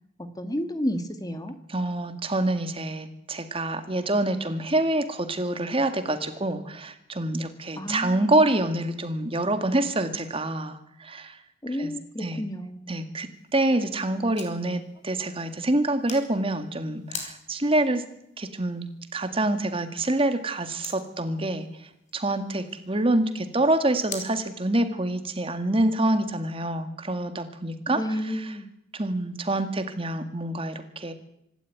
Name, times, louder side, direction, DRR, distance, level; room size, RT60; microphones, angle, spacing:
voice 1, 0.2-1.6 7.8-8.3 11.6-13.0 27.9-28.7, equal, 20° left, 9 dB, 1.5 m, -31 dB
voice 2, 1.7-11.4 11.7-11.9 12.2-12.4 12.9-18.0 18.4-28.5 28.9-31.1, right 1 dB, 30° right, 8 dB, 2.1 m, -26 dB
sound 1, 13.3-24.3, left 5 dB, 40° left, 4.3 m, -46 dB
26.0 x 12.0 x 9.5 m, 0.78 s
head